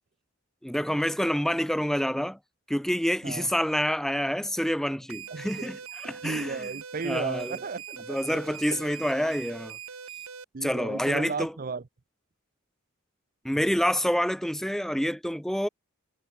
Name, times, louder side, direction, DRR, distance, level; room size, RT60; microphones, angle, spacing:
voice 1, 0.6-2.4 2.7-6.7 7.0-7.6 8.1-9.8 10.6-11.5 13.4-15.7, equal, ahead, 1.4 m, -27 dB
sound 1, 5.1-10.4, right 8 dB, 85° right, 1.8 m, -42 dB
voice 2, 5.3-5.7 6.0-8.4 10.5-11.8, right 4 dB, 40° right, 0.6 m, -34 dB
head